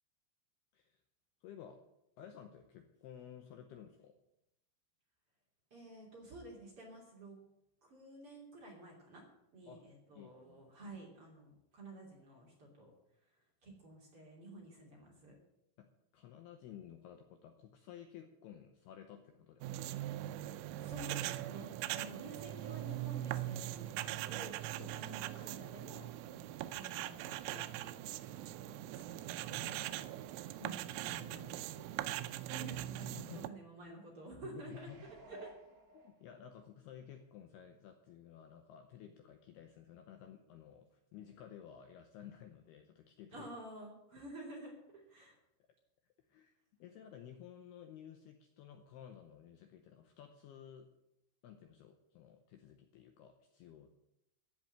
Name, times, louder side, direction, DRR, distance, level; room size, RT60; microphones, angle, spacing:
voice 1, 1.4-1.8 2.2-4.2 9.7-9.8 10.1-10.6 15.8-19.9 24.8-25.0 30.6-32.5 33.0-33.5 34.4-35.0 36.0-43.5 46.3-50.9 51.4-53.9, left 9 dB, 75° left, 6 dB, 2.4 m, -54 dB
voice 2, 5.7-7.4 7.8-9.2 9.5-12.9 13.2-15.4 20.8-28.0 28.2-30.2 30.6-30.9 32.4-34.9 35.3-35.5 43.3-45.4, right 2 dB, 35° right, -2 dB, 3.1 m, -52 dB
sound 1, 19.6-33.5, right 14 dB, 90° right, 3.2 m, -41 dB
sound 2, 34.5-36.6 37.1-37.2, equal, 60° right, 5.5 m, -55 dB
14.5 x 6.2 x 9.1 m, 0.85 s
omnidirectional pair, 5.5 m